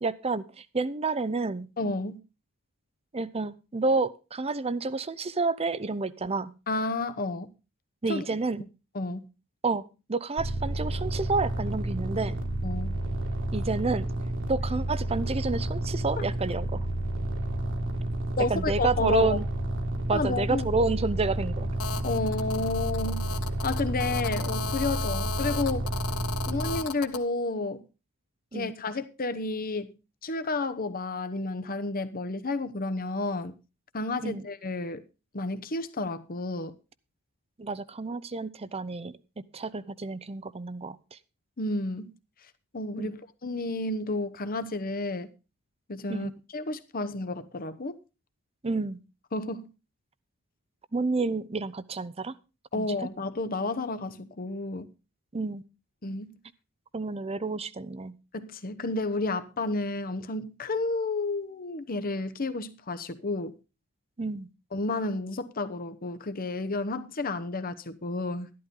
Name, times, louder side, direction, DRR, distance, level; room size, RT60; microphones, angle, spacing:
voice 1, 0.0-1.7 3.1-6.5 8.0-8.6 9.6-12.4 13.5-14.1 14.5-16.9 18.5-19.5 20.1-21.7 28.5-28.7 34.2-34.4 37.6-39.1 39.5-41.2 43.0-43.1 46.1-46.3 48.6-49.0 50.9-52.4 52.7-52.9 55.3-55.6 56.9-58.1 64.2-64.5, right 3 dB, 25° right, 0.6 m, -29 dB
voice 2, 1.8-2.2 6.7-7.5 8.1-8.2 8.9-9.3 12.6-13.0 18.3-19.4 20.1-20.7 22.0-23.3 23.6-25.9 26.5-27.8 28.5-29.9 30.2-33.6 33.9-35.0 35.3-36.7 41.6-42.1 42.7-45.3 45.9-48.0 49.3-49.7 52.7-54.9 56.0-56.3 58.3-63.6 64.7-68.5, left 2 dB, 40° left, 0.9 m, -31 dB
sound 1, 10.4-26.8, right 1 dB, 60° right, 2.0 m, -31 dB
Telephone, 21.8-27.2, left 6 dB, 80° left, 1.0 m, -36 dB
12.5 x 12.0 x 3.7 m
head